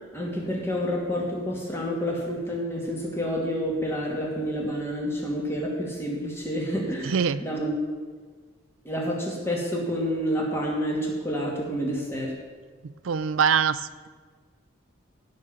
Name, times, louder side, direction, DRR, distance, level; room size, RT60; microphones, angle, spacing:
voice 1, 0.1-7.7 8.8-12.3, equal, 10° left, -2 dB, 2.4 m, -29 dB
voice 2, 7.0-7.4 12.8-14.1, right 6 dB, 85° right, 14 dB, 0.4 m, -24 dB
16.0 x 5.4 x 7.2 m, 1.5 s
head